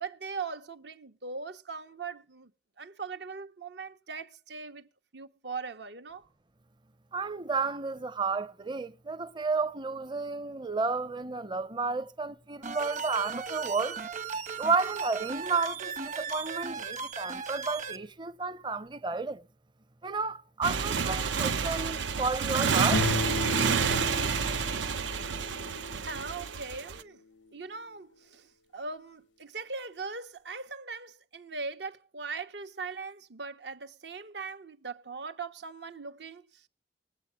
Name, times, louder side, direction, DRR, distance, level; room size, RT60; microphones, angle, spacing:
voice 1, 0.0-2.5 2.8-6.3 26.1-27.2 27.5-36.7, right 4 dB, 65° right, 1.1 m, -40 dB
voice 2, 7.1-14.0 14.6-19.4 20.0-23.1, right 4 dB, 25° right, 0.7 m, -32 dB
sound 1, 12.6-18.0, right 5 dB, 40° right, 1.2 m, -37 dB
Motorcycle, 20.6-27.0, right 6 dB, 85° right, 0.8 m, -29 dB
sound 2, 22.9-26.5, left 3 dB, 85° left, 0.7 m, -35 dB
19.5 x 8.3 x 7.0 m
head